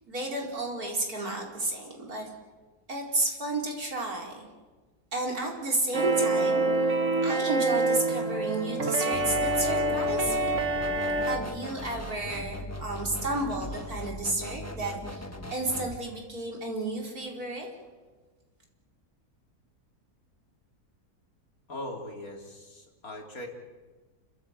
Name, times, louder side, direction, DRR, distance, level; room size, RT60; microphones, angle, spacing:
voice 1, 0.1-2.3 2.9-4.5 5.1-6.7 7.2-10.6 11.2-15.2 15.5-17.7, right 2 dB, 70° right, -1 dB, 5.0 m, -32 dB
sound 1, 5.9-11.4, right 2 dB, 50° right, 1.9 m, -26 dB
sound 2, 9.1-16.0, left 1 dB, 10° left, 1.2 m, -39 dB
voice 2, 21.7-23.5, left 1 dB, 65° left, 1 dB, 3.7 m, -40 dB
30.0 x 13.5 x 8.9 m, 1.3 s
omnidirectional pair, 1.7 m